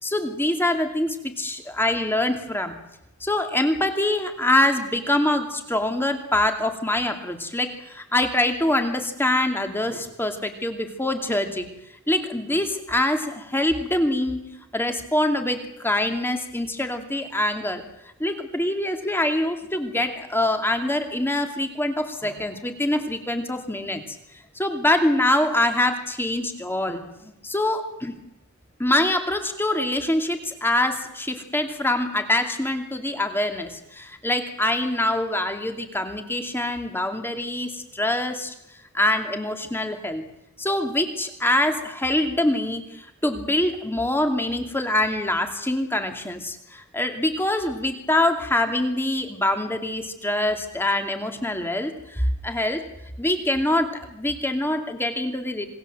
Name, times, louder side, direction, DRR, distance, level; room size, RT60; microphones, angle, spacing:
voice 1, 0.0-2.7 3.2-11.7 12.1-14.4 14.7-17.8 18.2-24.0 24.5-28.1 28.8-38.5 38.9-40.2 40.6-52.8 53.2-55.7, left 1 dB, 10° left, 6 dB, 2.6 m, -24 dB
26.5 x 21.0 x 7.8 m, 0.86 s
head